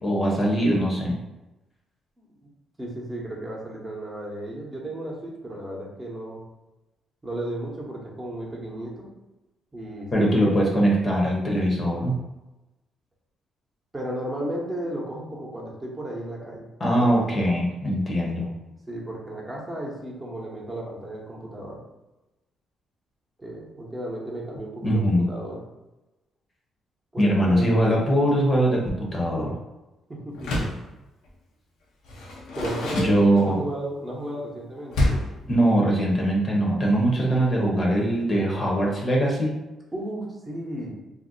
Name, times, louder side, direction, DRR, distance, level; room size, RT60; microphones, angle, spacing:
voice 1, 0.0-1.2 10.1-12.2 16.8-18.5 24.8-25.2 27.2-29.5 32.9-33.6 35.5-39.6, right 1 dB, 35° left, -2 dB, 0.8 m, -22 dB
voice 2, 2.2-2.5 2.8-6.4 7.2-9.1 9.7-10.3 13.9-16.7 16.9-17.1 18.9-21.8 23.4-25.6 27.1-27.6 30.1-30.5 32.6-35.2 39.9-41.0, right 1 dB, 20° right, -3 dB, 0.9 m, -34 dB
Door, 30.3-30.9 32.0-33.7 34.9-35.4, left 1 dB, 85° left, 0.6 m, -27 dB
2.6 x 2.1 x 3.8 m, 1.0 s
cardioid pair, 90°, 0 cm